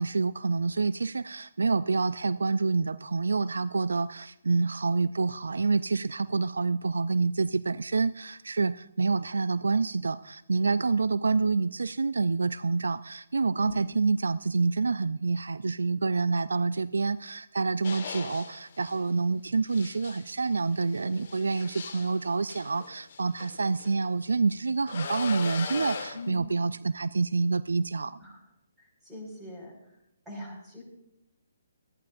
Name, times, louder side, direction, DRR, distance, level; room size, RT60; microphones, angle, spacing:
voice 1, 0.0-28.2, right 4 dB, 70° right, 16 dB, 0.3 m, -27 dB
sound 1, 17.8-19.0 19.7-24.0 24.9-26.3, left 6 dB, 45° left, 1.6 m, -39 dB
voice 2, 26.1-26.5 28.2-28.4 28.8-30.0 30.3-30.8, left 1 dB, 10° right, -1 dB, 5.3 m, -42 dB
19.5 x 14.0 x 2.6 m, 0.82 s
figure-of-eight pair, 135°, 0 cm